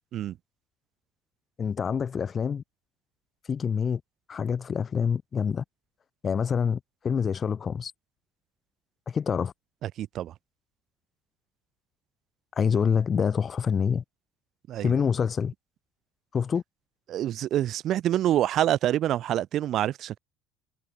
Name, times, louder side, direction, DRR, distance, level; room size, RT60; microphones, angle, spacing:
voice 1, 1.6-2.6 3.5-4.0 4.3-5.6 6.2-7.9 9.1-9.5 12.5-14.0 14.8-15.5 16.3-16.6, left 6 dB, 35° left, 3.3 m, -26 dB
voice 2, 9.8-10.3 14.7-14.9 17.1-20.2, right 12 dB, 55° right, 2.3 m, -26 dB
supercardioid pair, 95°, 0 cm